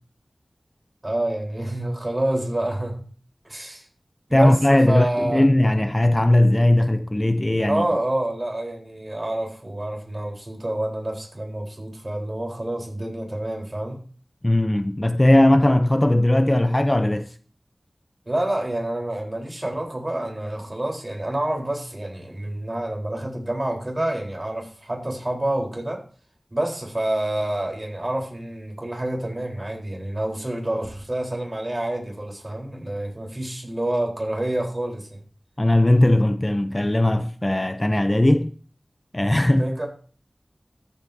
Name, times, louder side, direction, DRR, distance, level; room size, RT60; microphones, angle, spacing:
voice 1, 1.0-3.0 3.4-3.8 4.3-5.4 7.7-14.0 18.3-26.0 26.5-35.2 39.6-39.9, right 1 dB, 35° right, 3.9 m, -28 dB
voice 2, 4.3-7.8 14.4-17.3 35.6-38.5 39.1-39.6, left 1 dB, 25° left, 0.6 m, -18 dB
14.0 x 8.3 x 2.7 m
wide cardioid pair, 55°, 0 cm